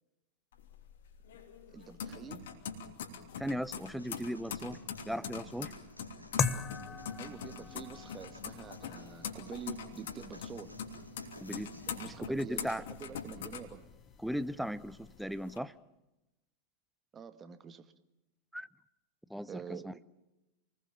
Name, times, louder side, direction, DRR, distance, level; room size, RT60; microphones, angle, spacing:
sound 1, 0.5-14.3 14.7-15.6, left 7 dB, 60° left, 3.0 m, -43 dB
voice 1, 1.7-2.5 7.2-10.7 11.9-13.8 17.1-17.9 19.5-20.0, right 7 dB, 25° right, 10 dB, 1.6 m, -47 dB
voice 2, 3.4-5.7 11.4-11.7 12.1-12.8 14.2-15.7 18.5-18.7 19.3-20.0, equal, ahead, 17 dB, 0.8 m, -37 dB
sound 2, 4.0-12.0, left 2 dB, 90° left, 2.5 m, -54 dB
sound 3, 6.4-15.2, left 5 dB, 20° left, 1.3 m, -42 dB
28.5 x 20.5 x 7.2 m, 0.97 s
figure-of-eight pair, 90°, 0 cm